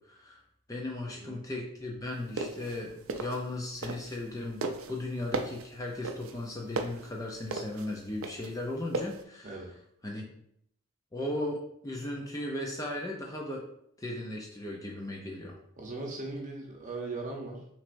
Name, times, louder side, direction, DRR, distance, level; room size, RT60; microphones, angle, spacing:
voice 1, 0.1-0.4 0.7-9.5 10.0-10.2 11.1-13.6 14.0-15.6, left 1 dB, 15° left, -1 dB, 0.5 m, -37 dB
voice 2, 1.1-1.4 9.4-9.7 15.8-17.7, right 3 dB, 35° right, 0 dB, 0.9 m, -39 dB
sound 1, 2.2-4.3 4.6-9.2, right 3 dB, 70° right, 0.4 m, -36 dB
5.9 x 3.3 x 2.6 m, 0.72 s
head